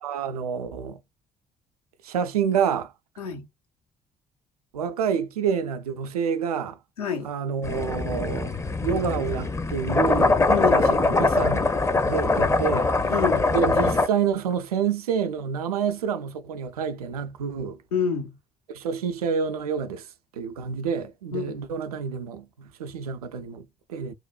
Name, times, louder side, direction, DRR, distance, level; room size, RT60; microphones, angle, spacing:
voice 1, 0.0-1.0 2.0-2.9 4.7-6.8 7.2-8.5 8.8-10.4 10.7-11.7 12.1-12.9 13.5-17.8 18.7-20.1 20.3-24.1, right 7 dB, 80° right, 0.4 m, -28 dB
voice 2, 3.2-3.5 7.0-7.3 10.5-10.9 13.1-13.5 17.9-18.4 21.3-21.6, left 6 dB, 80° left, 0.7 m, -27 dB
sound 1, 7.6-14.1, left 3 dB, 15° left, 0.5 m, -22 dB
3.1 x 2.1 x 2.3 m
figure-of-eight pair, 45°, 19 cm